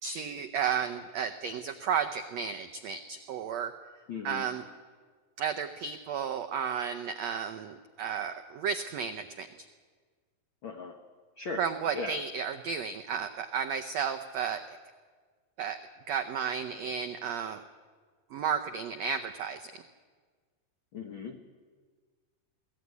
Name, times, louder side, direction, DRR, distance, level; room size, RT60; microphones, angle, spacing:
voice 1, 0.0-3.7 4.2-4.6 5.4-9.5 11.6-14.6 15.6-15.8 16.1-17.6 18.3-19.7, right 7 dB, 90° right, 6 dB, 1.5 m, -33 dB
voice 2, 4.1-4.5 10.6-11.0 11.4-11.6 11.9-12.1 20.9-21.4, left 4 dB, 80° left, 4 dB, 1.1 m, -37 dB
22.5 x 15.0 x 9.6 m, 1.5 s
omnidirectional pair, 4.1 m